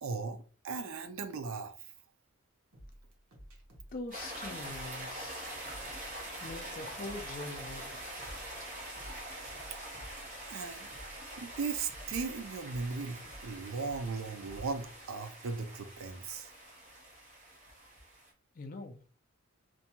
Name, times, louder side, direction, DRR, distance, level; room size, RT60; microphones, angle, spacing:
voice 1, 0.0-1.7 10.5-10.9 11.4-16.5, right 4 dB, 70° right, 0.4 m, -37 dB
sound 1, 2.7-15.0, equal, 90° right, 0.9 m, -54 dB
voice 2, 3.9-5.5 6.4-8.2 18.5-19.0, left 2 dB, 40° left, 0.4 m, -43 dB
sound 2, 4.1-18.3, right 1 dB, 35° right, 0.8 m, -44 dB
2.6 x 2.2 x 2.8 m
head